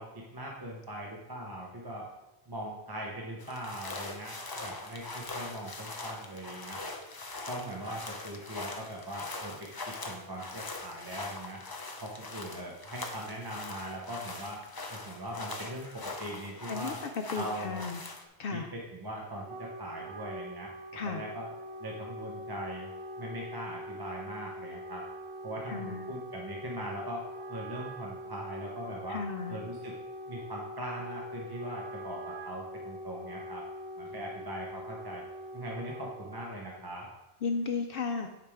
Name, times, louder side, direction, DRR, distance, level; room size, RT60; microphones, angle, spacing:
voice 1, 0.0-2.1 2.5-6.8 7.5-11.6 12.0-14.6 14.9-17.0 17.3-17.8 18.5-20.7 21.0-21.5 21.8-22.9 23.2-25.0 25.4-29.2 29.5-29.9 30.3-33.6 34.0-35.2 35.5-37.1, right 1 dB, 25° right, -2 dB, 0.8 m, -40 dB
sound 1, 3.4-18.2, left 3 dB, 25° left, 0.5 m, -42 dB
voice 2, 16.7-18.0 18.4-18.7 20.9-21.2 25.7-26.0 29.1-29.6 37.4-38.3, left 5 dB, 65° left, 5 dB, 0.7 m, -34 dB
Wind instrument woodwind instrument, 19.2-36.7, equal, 80° right, 0.9 m, -43 dB
10.5 x 5.0 x 3.5 m, 1.0 s
omnidirectional pair, 1.1 m